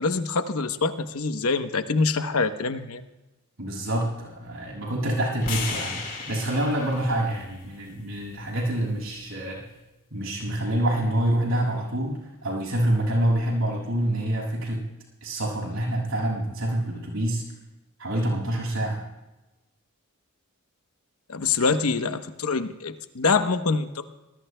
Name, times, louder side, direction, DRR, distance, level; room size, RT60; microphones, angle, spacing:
voice 1, 0.0-3.0 21.3-24.0, left 4 dB, 90° left, 9 dB, 0.9 m, -25 dB
voice 2, 3.6-9.6 10.1-14.8 15.2-17.4 18.0-19.0, right 1 dB, 75° right, -3 dB, 6.6 m, -26 dB
sound 1, 5.4-9.6, left 4 dB, 40° left, 3.6 m, -37 dB
26.0 x 20.0 x 2.2 m, 1.1 s
head